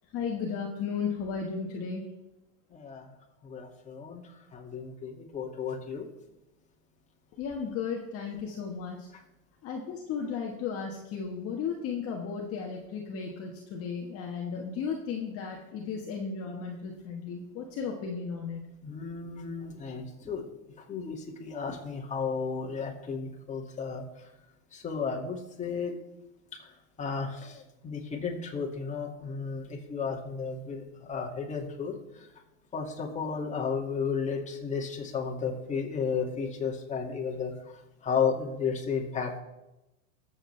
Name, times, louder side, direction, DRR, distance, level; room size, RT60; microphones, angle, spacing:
voice 1, 0.1-2.0 7.4-9.0 9.6-18.6, left 6 dB, 35° left, 0 dB, 1.4 m, -34 dB
voice 2, 2.7-3.1 3.4-4.2 4.5-6.1 18.8-20.4 20.9-24.0 24.7-25.9 27.0-31.9 32.7-37.7 38.0-39.4, left 5 dB, 15° left, 0 dB, 2.1 m, -33 dB
20.5 x 7.6 x 3.3 m, 0.97 s
supercardioid pair, 135°, 41 cm